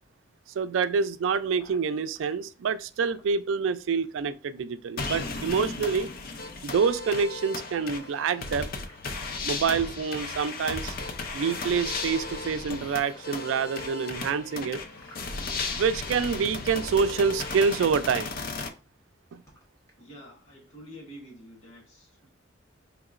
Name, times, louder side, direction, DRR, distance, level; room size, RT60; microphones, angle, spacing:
voice 1, 0.6-6.1 6.6-8.7 9.4-11.0 11.3-14.8 15.6-18.3 19.3-19.4, right 5 dB, 90° right, 0.3 m, -27 dB
sound 1, 1.6-2.3 2.9-3.8 4.0-5.5 6.2-6.4 6.9-7.6 7.9-9.2 10.0-10.6 11.0-11.1 12.0-12.6 12.9-13.4 14.2-15.8 16.1-17.6 18.2-18.4 18.7-19.0 19.3-20.0, equal, 15° left, 0.9 m, -56 dB
sound 2, 5.0-18.7, left 3 dB, 50° left, 0.5 m, -35 dB
voice 2, 20.0-22.3, equal, 80° left, 1.7 m, -48 dB
4.6 x 2.9 x 2.4 m
head